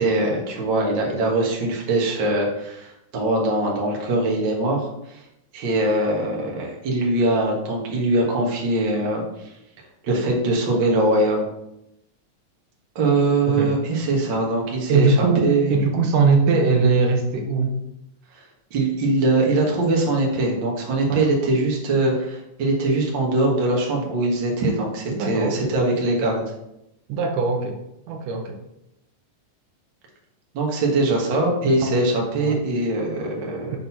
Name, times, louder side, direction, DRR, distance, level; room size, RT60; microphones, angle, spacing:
voice 1, 0.0-5.2 5.5-9.5 9.8-11.4 12.9-15.7 18.3-18.4 18.7-26.4 30.5-33.8, right 2 dB, 50° right, -1 dB, 1.6 m, -22 dB
voice 2, 14.9-17.8 21.1-21.2 25.1-25.7 27.1-27.8 28.1-28.6 31.6-32.0 32.4-32.6, right 4 dB, 80° right, 3 dB, 2.3 m, -21 dB
6.0 x 3.9 x 5.6 m, 0.83 s
omnidirectional pair, 3.7 m